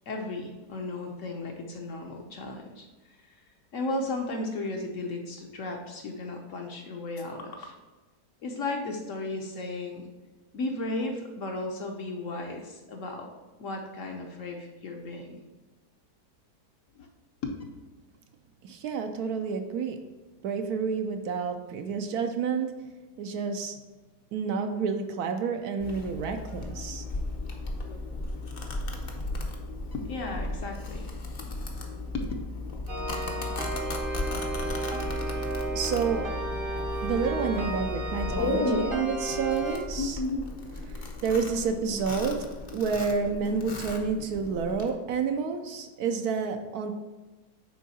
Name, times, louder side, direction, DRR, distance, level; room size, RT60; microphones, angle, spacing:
voice 1, 0.1-2.9 3.7-7.7 8.4-10.0 10.5-13.3 13.6-15.4 16.9-17.1 17.4-17.5 29.9-31.1 31.4-31.5 32.1-32.3 38.3-38.9 40.0-40.4, left 2 dB, 60° left, 2 dB, 1.0 m, -34 dB
voice 2, 18.6-20.0 20.4-22.7 23.2-23.7 24.3-27.0 35.4-36.3 37.0-40.2 40.9-42.5 42.7-46.9, right 5 dB, 75° right, 6 dB, 1.1 m, -29 dB
Domestic sounds home sounds, 25.8-44.9, left 2 dB, 45° left, 0.7 m, -36 dB
sound 1, 32.9-39.8, right 2 dB, 45° right, 0.8 m, -34 dB
9.1 x 3.7 x 4.2 m, 1.2 s
omnidirectional pair, 1.8 m